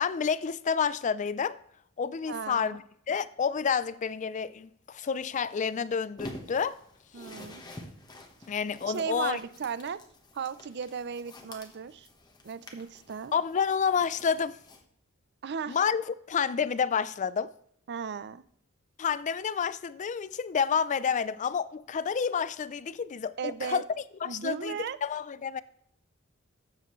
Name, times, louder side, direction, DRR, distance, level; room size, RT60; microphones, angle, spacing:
voice 1, 0.0-1.6 2.0-2.8 3.1-6.8 8.5-9.4 13.3-14.6 15.7-17.5 19.0-23.8 24.2-25.6, left 6 dB, 35° left, 0.4 m, -29 dB
voice 2, 2.3-2.8 7.1-7.6 8.9-10.0 10.3-12.1 12.4-13.3 15.4-15.8 17.9-18.4 23.4-23.8 24.3-25.0, right 6 dB, 55° right, 0.5 m, -36 dB
sound 1, 6.2-14.8, left 1 dB, 20° left, 1.2 m, -48 dB
12.5 x 8.3 x 3.1 m
head